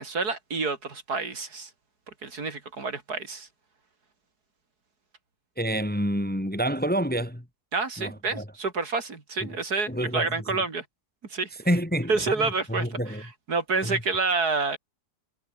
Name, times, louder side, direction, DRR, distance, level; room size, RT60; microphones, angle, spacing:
voice 1, 0.0-1.7 2.2-3.5 7.7-10.9 11.3-11.5 12.1-14.8, right 4 dB, 60° right, 3.4 m, -28 dB
voice 2, 5.6-7.4 8.0-8.4 9.4-9.5 9.9-10.6 11.7-12.1 12.7-13.2 13.8-14.0, equal, 5° left, 2.0 m, -28 dB
omnidirectional pair, 1.9 m